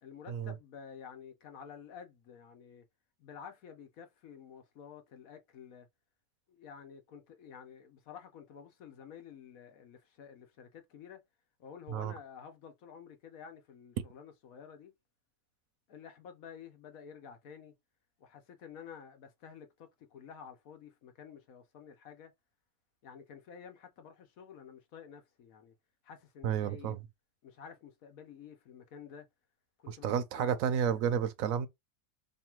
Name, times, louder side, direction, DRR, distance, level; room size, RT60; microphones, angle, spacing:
voice 1, 0.0-2.9 3.2-5.9 6.5-11.2 11.6-14.9 15.9-17.7 18.2-22.3 23.0-25.7 26.0-26.9 27.4-29.3 29.8-30.1 30.3-30.5, left 7 dB, 75° left, 1.3 m, -51 dB
voice 2, 26.4-27.0 29.9-31.7, right 8 dB, 75° right, 1.0 m, -31 dB
3.1 x 2.4 x 4.4 m
omnidirectional pair, 1.5 m